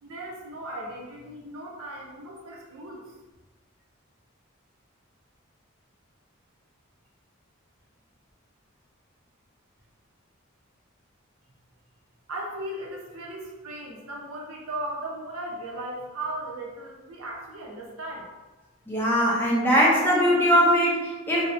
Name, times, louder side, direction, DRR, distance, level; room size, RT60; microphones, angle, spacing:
voice 1, 0.0-3.1 12.3-18.3, right 1 dB, 90° right, -2 dB, 0.6 m, -37 dB
voice 2, 18.9-21.5, equal, 10° left, -5 dB, 0.5 m, -21 dB
2.7 x 2.0 x 2.4 m, 1.1 s
head